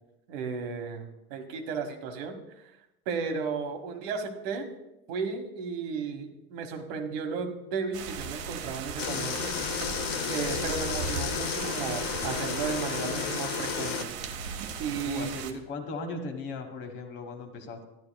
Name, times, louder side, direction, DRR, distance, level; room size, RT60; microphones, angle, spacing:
voice 1, 0.3-2.6 3.0-4.7 5.1-9.5 10.3-14.1 14.8-15.6, right 5 dB, 85° right, 5 dB, 1.4 m, -34 dB
sound 1, 7.9-15.5, right 6 dB, 70° right, 1.1 m, -37 dB
sound 2, 9.0-14.0, left 8 dB, 85° left, 0.9 m, -32 dB
voice 2, 15.0-17.8, left 3 dB, 40° left, 5 dB, 1.4 m, -38 dB
12.5 x 10.5 x 2.3 m, 0.90 s
cardioid pair, 165°, 29 cm